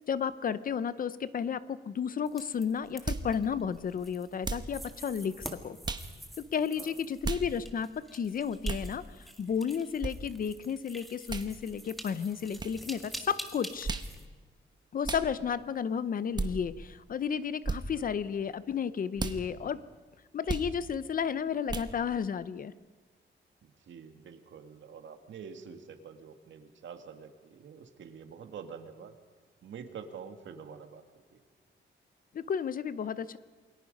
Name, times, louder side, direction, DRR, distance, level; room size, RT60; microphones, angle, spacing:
voice 1, 0.1-5.8 6.5-13.9 14.9-19.8 20.3-22.7 32.3-33.4, left 7 dB, 45° left, 15 dB, 0.7 m, -32 dB
sound 1, 2.3-14.3, equal, ahead, 1.7 m, -47 dB
sound 2, 3.1-3.3 4.4-4.7 5.8-6.1 7.2-7.5 8.6-8.9 10.0-10.1 11.3-11.5 12.6-12.7 13.8-14.1 15.0-15.3 16.3-16.5 17.6-17.8 19.2-19.4 20.5-20.7 21.7-21.9, right 3 dB, 20° right, 1.1 m, -33 dB
voice 2, 23.6-29.1 29.6-31.0 31.3-31.4, right 6 dB, 70° right, 7 dB, 2.0 m, -47 dB
28.0 x 22.5 x 5.4 m, 1.4 s
wide cardioid pair, 180°, 20 cm